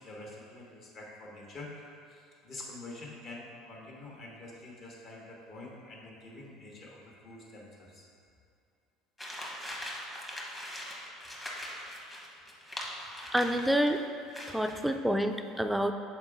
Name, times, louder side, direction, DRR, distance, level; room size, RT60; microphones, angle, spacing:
voice 1, 0.0-8.1 9.5-9.9, left 2 dB, 45° left, -2 dB, 1.3 m, -47 dB
sound 1, 9.2-14.0 14.3-14.8, equal, 15° left, 1.1 m, -41 dB
voice 2, 13.3-14.0 14.5-15.9, equal, 5° right, 6 dB, 0.3 m, -28 dB
6.5 x 4.3 x 3.6 m, 2.5 s
supercardioid pair, 115°, 0 cm